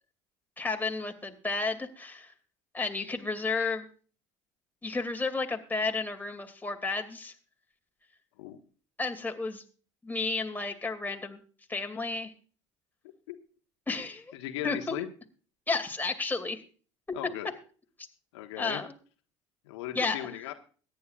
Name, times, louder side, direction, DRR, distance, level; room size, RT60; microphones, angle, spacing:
voice 1, 0.6-2.3 2.7-3.9 4.8-7.3 9.0-9.6 10.0-11.4 11.7-12.3 13.9-14.3 14.6-15.0 15.7-16.6 18.6-18.9 19.9-20.3, left 3 dB, 10° left, 4 dB, 2.5 m, -32 dB
voice 2, 14.3-15.1 17.1-17.5 18.3-18.8 19.6-20.5, left 13 dB, 75° left, 6 dB, 1.3 m, -37 dB
23.0 x 10.0 x 2.4 m, 0.40 s
hypercardioid pair, 65°, 15 cm